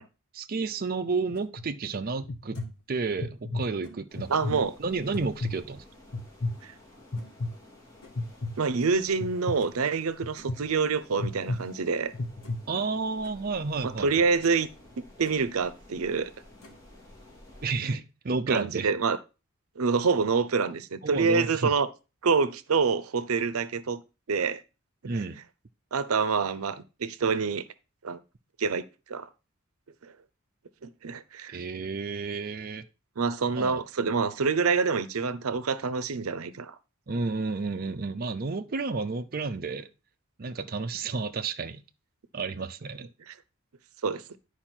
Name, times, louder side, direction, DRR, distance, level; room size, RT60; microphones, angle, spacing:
voice 1, 0.3-2.6 2.9-5.8 12.7-14.3 17.6-18.9 21.0-21.7 25.0-25.4 31.5-32.8 33.5-33.8 37.1-39.9 40.4-41.8 42.3-43.1, right 4 dB, 45° right, 0.5 m, -31 dB
sound 1, 1.3-1.5 2.0-2.1 2.5-2.8 3.8-4.0 5.1-5.4 7.2-7.3 8.0-8.2 8.8-9.0 9.6-9.9 10.4-10.6 11.9-12.0 12.4-12.7 13.0-13.4 13.9-14.0 14.4-14.7 15.0-15.4 16.6-16.9, equal, 90° left, 2.2 m, -53 dB
sound 2, 1.3-1.7 2.2-2.7 3.2-3.6 4.1-4.6 5.1-5.6 6.1-6.6 7.1-7.5 8.2-8.5 9.2-9.6 10.2-10.6 11.2-11.6 12.1-12.6, left 2 dB, 50° left, 1.0 m, -31 dB
sound 3, 4.1-17.8, left 1 dB, 15° left, 3.2 m, -53 dB
voice 2, 4.3-4.7 6.6-6.7 8.6-12.1 13.8-14.7 15.2-16.3 18.5-19.2 19.8-21.9 22.2-24.0 24.3-24.6 25.1-25.2 25.9-27.7 28.0-28.2 28.6-29.3 30.0-30.1 30.8-31.6 33.2-36.8 43.3-43.4 44.0-44.4, right 5 dB, 90° right, 0.6 m, -27 dB
10.5 x 4.8 x 4.4 m
head